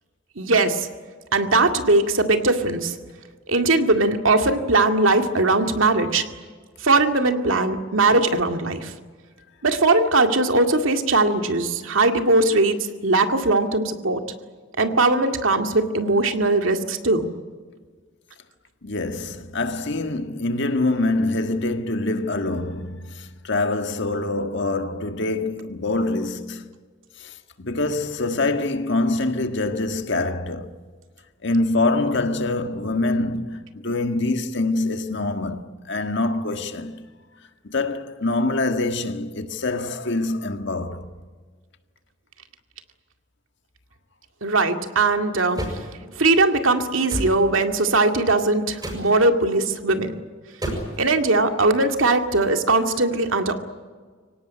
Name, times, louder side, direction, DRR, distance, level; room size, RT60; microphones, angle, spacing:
voice 1, 0.4-0.9 1.3-3.0 3.5-6.3 6.8-8.9 9.6-12.8 13.0-14.2 14.8-17.3 44.4-45.6 46.2-50.1 51.0-53.6, right 2 dB, 85° right, 2.1 m, -20 dB
voice 2, 18.8-26.7 27.2-30.7 31.4-37.0 37.7-41.1, left 2 dB, 60° left, 1.7 m, -25 dB
sound 1, 45.5-45.9 47.1-47.4 48.8-49.1 50.6-51.0, right 1 dB, 20° right, 6.8 m, -29 dB
24.5 x 18.0 x 10.0 m
head